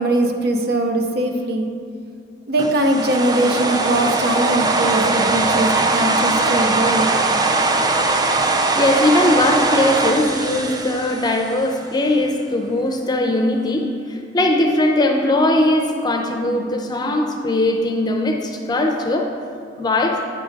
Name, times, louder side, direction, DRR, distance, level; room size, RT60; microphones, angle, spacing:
voice 1, 0.0-1.7 2.5-7.2, right 1 dB, 60° right, 4 dB, 0.6 m, -21 dB
sound 1, 2.6-11.8, right 3 dB, 20° right, 0.4 m, -20 dB
voice 2, 8.7-19.3 19.8-20.2, left 1 dB, 25° left, 2 dB, 0.6 m, -19 dB
9.0 x 3.7 x 5.1 m, 2.3 s
head